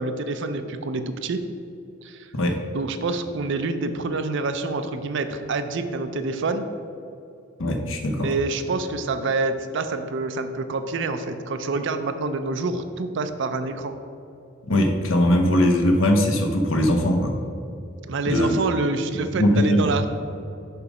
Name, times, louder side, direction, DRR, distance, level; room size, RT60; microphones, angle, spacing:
voice 1, 0.0-1.4 2.0-2.3 2.7-6.7 8.2-13.9 18.1-20.1, right 3 dB, 65° right, 8 dB, 0.5 m, -27 dB
voice 2, 7.6-8.3 14.6-17.4 18.3-18.6 19.1-20.0, left 1 dB, 80° left, 4 dB, 0.9 m, -20 dB
6.9 x 5.2 x 4.9 m, 2.7 s
head